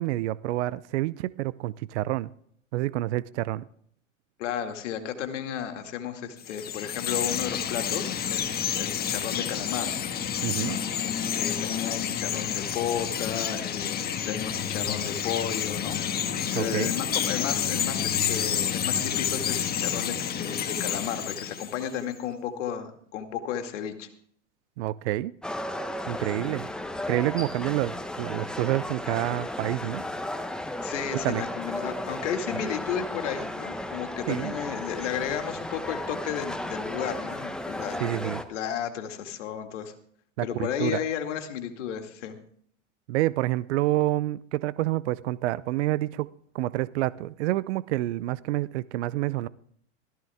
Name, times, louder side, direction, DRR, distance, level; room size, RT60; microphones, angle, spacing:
voice 1, 0.0-2.3 2.7-3.6 10.4-10.8 16.5-16.9 24.8-25.3 26.1-26.7 27.1-30.0 31.2-31.4 34.3-34.5 38.0-38.4 40.4-41.0 43.1-46.3 46.5-49.5, right 16 dB, 65° right, 19 dB, 0.6 m, -28 dB
voice 2, 4.4-9.9 10.6-10.8 11.3-16.0 16.3-24.1 30.8-39.9 40.4-42.4, left 9 dB, 70° left, 6 dB, 2.3 m, -33 dB
Chirp tweet, 6.4-22.0, left 8 dB, 25° left, 1.5 m, -29 dB
sound 1, 25.4-38.4, left 1 dB, ahead, 1.1 m, -34 dB
17.0 x 14.0 x 3.6 m, 0.62 s
hypercardioid pair, 110°, 37 cm